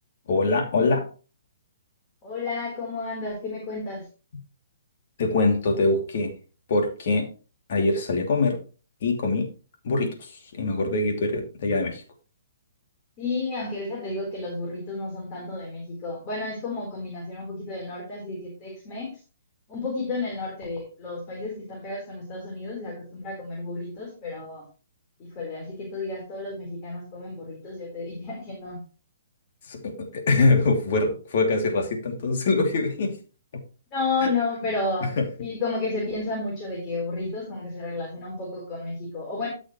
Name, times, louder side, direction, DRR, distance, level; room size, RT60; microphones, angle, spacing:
voice 1, 0.3-1.0 5.2-6.3 6.7-7.3 7.7-8.6 9.0-9.5 9.8-12.0 29.7-33.1 34.2-34.3 35.2-35.3, left 3 dB, 55° left, 3 dB, 2.9 m, -23 dB
voice 2, 2.2-4.1 13.2-19.2 19.7-24.6 25.2-28.8 33.9-39.5, left 3 dB, 30° left, -3 dB, 4.1 m, -32 dB
13.5 x 6.3 x 3.2 m, 0.35 s
hypercardioid pair, 135°, 0 cm